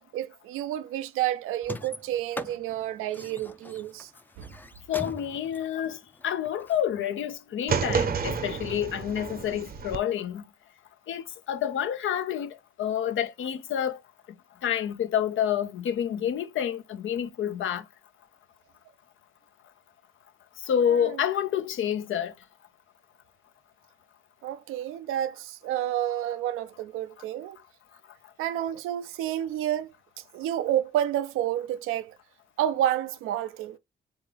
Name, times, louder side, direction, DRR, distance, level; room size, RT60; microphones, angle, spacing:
voice 1, 0.1-4.1 4.4-4.5 20.9-21.2 24.4-27.6 28.4-32.2 32.6-33.8, right 12 dB, 80° right, 0.4 m, -30 dB
sound 1, 1.6-6.8, left 2 dB, 10° left, 0.5 m, -41 dB
voice 2, 4.9-10.4 11.1-14.0 14.6-17.8 20.6-22.3, left 9 dB, 70° left, 0.6 m, -28 dB
sound 2, 7.7-10.0, right 6 dB, 45° right, 0.7 m, -29 dB
3.6 x 3.6 x 3.3 m
supercardioid pair, 50°, 21 cm